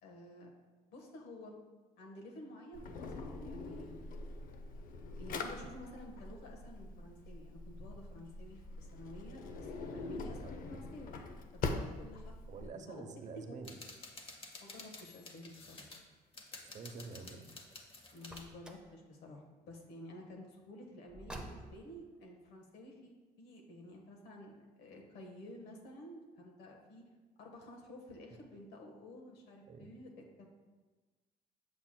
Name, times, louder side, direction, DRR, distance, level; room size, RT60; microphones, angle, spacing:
voice 1, 0.0-0.5 0.9-1.5 2.0-3.9 5.2-11.2 11.6-12.3 12.9-13.0 13.3-13.6 14.6-15.9 18.1-23.1 23.4-27.0 27.4-30.4, left 1 dB, 80° left, 1 dB, 1.3 m, -52 dB
Drawer open or close, 2.7-12.7, left 3 dB, 55° left, 0.6 m, -43 dB
voice 2, 10.4-10.9 12.5-13.7 16.7-17.5 29.7-29.9, right 4 dB, 45° right, 6 dB, 0.7 m, -48 dB
sound 1, 13.6-16.0 16.3-18.5, left 3 dB, 30° left, 0.9 m, -52 dB
Car, 18.2-19.0 21.1-22.0, right 1 dB, 5° right, 0.7 m, -48 dB
7.3 x 6.8 x 2.2 m, 1.3 s
cardioid pair, 110°, 17 cm